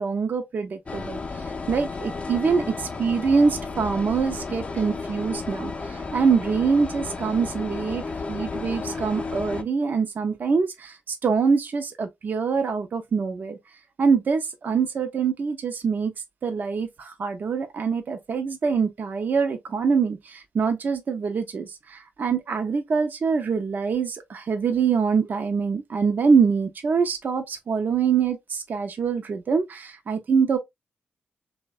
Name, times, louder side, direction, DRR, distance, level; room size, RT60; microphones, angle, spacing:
voice 1, 0.0-8.0 8.3-13.6 14.0-16.1 16.4-30.6, right 5 dB, 50° right, 0.4 m, -24 dB
sound 1, 0.9-9.6, left 4 dB, 35° left, 0.4 m, -33 dB
2.6 x 2.1 x 2.3 m
cardioid pair, 65°, 4 cm